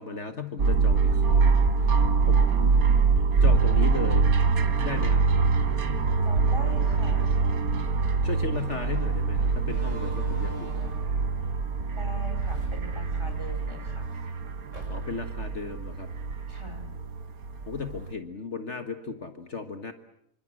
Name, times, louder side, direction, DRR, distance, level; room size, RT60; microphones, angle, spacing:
voice 1, 0.0-2.0 2.3-2.8 3.4-4.3 4.8-5.2 8.2-10.9 14.9-16.1 17.7-19.9, left 5 dB, 55° left, 8 dB, 1.8 m, -35 dB
sound 1, 0.6-18.1, right 4 dB, 85° right, 1.9 m, -24 dB
voice 2, 6.2-7.4 11.9-14.1 16.5-16.8, right 1 dB, 20° right, 5 dB, 4.5 m, -41 dB
Slam, 8.5-8.7 9.6-11.2 12.2-13.6 14.0-14.1 14.7-15.3, equal, 55° right, 6.4 m, -41 dB
27.5 x 25.0 x 7.8 m, 0.74 s
omnidirectional pair, 1.5 m